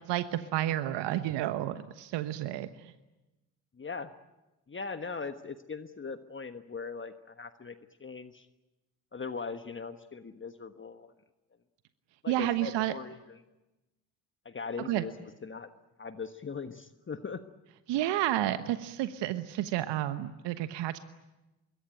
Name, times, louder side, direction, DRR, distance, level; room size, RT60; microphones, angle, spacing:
voice 1, 0.1-2.9 12.3-12.9 14.8-15.0 17.9-21.0, right 13 dB, 60° right, 11 dB, 1.3 m, -31 dB
voice 2, 3.8-4.1 4.7-7.7 8.0-8.5 9.1-11.1 12.2-13.4 14.4-15.1 15.4-15.7 16.0-17.4, left 5 dB, 25° left, 9 dB, 1.4 m, -40 dB
26.0 x 22.0 x 9.2 m, 1.0 s
hypercardioid pair, 50°, 47 cm